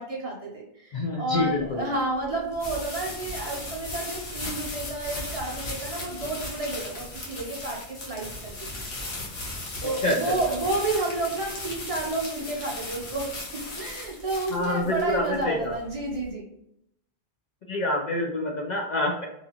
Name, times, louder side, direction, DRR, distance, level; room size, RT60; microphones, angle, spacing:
voice 1, 0.0-8.7 9.8-16.5, right 2 dB, 40° right, -3 dB, 0.6 m, -31 dB
voice 2, 0.9-1.9 10.0-10.3 14.5-15.8 17.7-19.2, left 1 dB, 55° left, -1 dB, 0.5 m, -27 dB
sound 1, 1.4-16.3, left 2 dB, 75° left, 1.1 m, -37 dB
2.7 x 2.4 x 2.8 m, 0.77 s
omnidirectional pair, 1.1 m